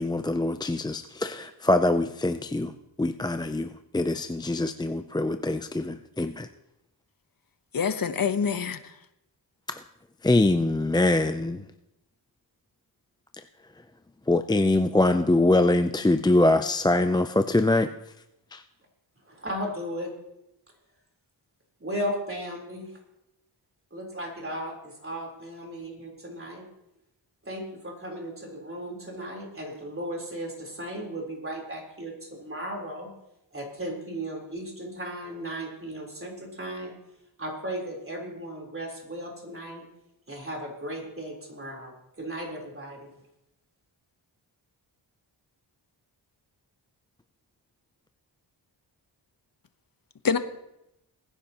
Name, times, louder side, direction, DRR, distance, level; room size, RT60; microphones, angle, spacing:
voice 1, 0.0-2.7 3.0-6.5 9.7-9.8 10.2-11.6 14.3-17.9 18.5-18.6, left 2 dB, 10° left, 8 dB, 0.4 m, -23 dB
voice 2, 7.7-8.9 50.2-50.4, left 6 dB, 50° left, 11 dB, 1.0 m, -26 dB
voice 3, 19.2-20.1 21.8-23.0 23.9-26.6 27.4-33.1 33.5-36.9 37.4-39.9 40.3-43.1, equal, 30° right, 0 dB, 3.8 m, -36 dB
21.0 x 10.0 x 2.9 m, 0.86 s
wide cardioid pair, 70°, 45 cm